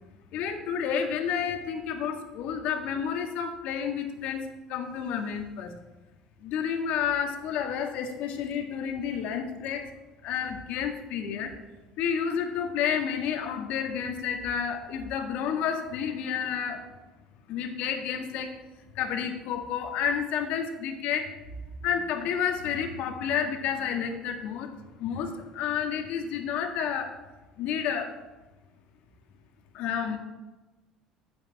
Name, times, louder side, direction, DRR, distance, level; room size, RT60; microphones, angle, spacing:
voice 1, 0.3-5.7 6.4-9.9 10.2-11.5 12.0-16.9 17.5-18.6 18.9-21.4 21.8-24.7 25.0-27.2 27.6-28.1 29.7-30.2, left 7 dB, 65° left, 5 dB, 1.7 m, -30 dB
9.7 x 5.7 x 8.2 m, 1.1 s
hypercardioid pair, 65°, 2 cm